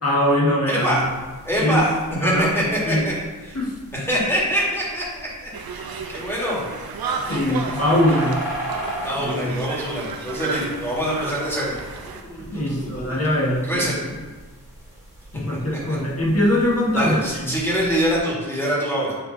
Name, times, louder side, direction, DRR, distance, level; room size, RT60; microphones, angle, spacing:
voice 1, 0.0-1.1 1.6-1.8 2.1-2.5 2.9-3.0 3.5-3.8 7.3-8.4 9.2-9.6 10.6-10.7 12.5-13.8 15.3-17.5, left 1 dB, 40° left, -4 dB, 1.6 m, -22 dB
voice 2, 0.7-1.0 1.4-3.1 3.4-3.6 3.9-6.6 9.0-11.8 12.1-13.2 13.6-14.0 15.9-16.0 16.9-19.2, equal, 5° left, -6 dB, 2.0 m, -24 dB
sound 1, 0.8-18.2, right 1 dB, 10° right, 2.0 m, -38 dB
Conversation, 5.5-12.2, right 5 dB, 75° right, 0.6 m, -33 dB
7.9 x 3.4 x 4.0 m, 1.3 s
wide cardioid pair, 95°, 37 cm